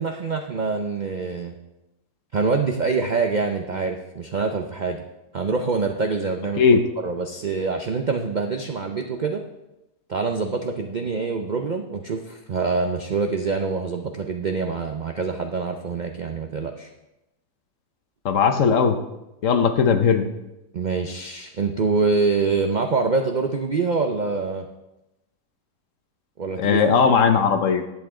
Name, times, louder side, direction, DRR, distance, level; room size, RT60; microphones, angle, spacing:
voice 1, 0.0-1.5 2.3-5.0 5.3-9.4 10.1-16.9 20.7-24.7 26.4-26.8, right 4 dB, 85° right, 4 dB, 0.4 m, -25 dB
voice 2, 18.2-19.0 19.4-20.3 26.6-27.8, left 6 dB, 60° left, 7 dB, 1.0 m, -18 dB
10.5 x 8.3 x 3.7 m, 0.94 s
omnidirectional pair, 1.7 m